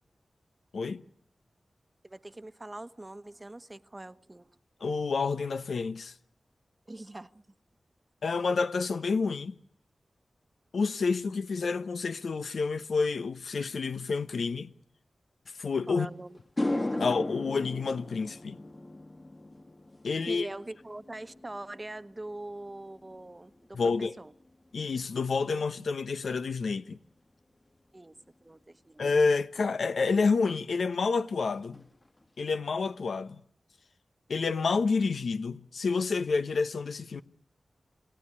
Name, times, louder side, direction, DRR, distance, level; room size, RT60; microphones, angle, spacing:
voice 1, 2.0-4.5 6.9-7.4 15.9-16.4 16.8-17.0 20.3-24.3 27.9-28.1 28.4-29.0, right 2 dB, 25° right, 1.1 m, -43 dB
voice 2, 4.8-6.1 8.2-9.5 10.7-14.7 15.6-16.1 17.0-18.6 20.0-20.5 23.7-24.2 24.7-27.0 29.0-31.8 32.4-33.4 34.3-37.2, left 4 dB, 85° left, 1.0 m, -29 dB
sound 1, 15.8-15.9 16.4-24.9 25.2-25.6 29.2-29.3 30.9-31.0 31.3-31.5 31.7-32.3, left 1 dB, 35° left, 2.1 m, -38 dB
28.0 x 16.0 x 9.7 m
cardioid pair, 55°, 0 cm